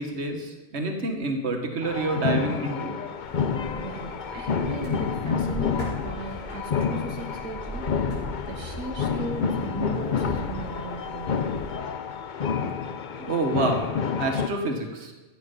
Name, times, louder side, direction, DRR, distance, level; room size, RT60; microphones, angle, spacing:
voice 1, 0.0-2.9 13.2-13.9 14.2-15.1, right 3 dB, 50° right, 3 dB, 1.8 m, -28 dB
sound 1, 1.8-14.5, left 6 dB, 50° left, 0.6 m, -29 dB
sound 2, 3.2-11.7, equal, 75° left, 5.2 m, -40 dB
voice 2, 3.7-7.9 8.5-11.5, right 3 dB, 80° right, 3 dB, 1.6 m, -37 dB
14.0 x 9.0 x 5.4 m, 1.1 s
omnidirectional pair, 1.5 m